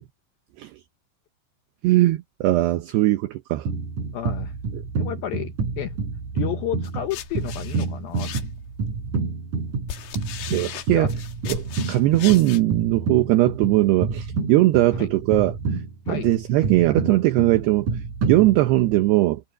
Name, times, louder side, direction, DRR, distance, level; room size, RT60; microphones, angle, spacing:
voice 1, 1.8-3.7 10.5-11.1 11.5-15.5 16.1-17.9 18.2-19.4, right 17 dB, 75° right, 2.5 m, -20 dB
sound 1, 3.6-19.0, right 4 dB, 40° right, 6.4 m, -29 dB
voice 2, 4.1-4.5 5.0-6.0 6.4-8.3 10.9-11.1 14.9-15.1 16.1-16.3, left 12 dB, 80° left, 2.1 m, -31 dB
sound 2, 6.8-8.8 9.5-12.6, left 10 dB, 60° left, 2.9 m, -37 dB
omnidirectional pair, 5.6 m